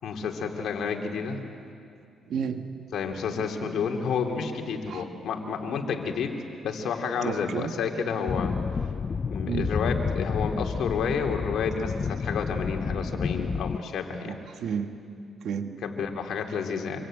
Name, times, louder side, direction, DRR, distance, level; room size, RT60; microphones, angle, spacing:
voice 1, 0.0-1.4 2.9-6.3 6.6-8.5 9.3-14.4 15.8-17.1, left 6 dB, 70° left, 3 dB, 3.1 m, -30 dB
voice 2, 2.3-2.7 3.4-3.8 4.9-5.0 7.2-7.7 9.5-9.8 14.3-15.0 15.4-15.8, right 7 dB, 70° right, 6 dB, 1.6 m, -32 dB
sound 1, 8.3-13.8, left 5 dB, 40° left, 0.6 m, -30 dB
27.0 x 23.0 x 9.0 m, 2.5 s
cardioid pair, 90°, 0 cm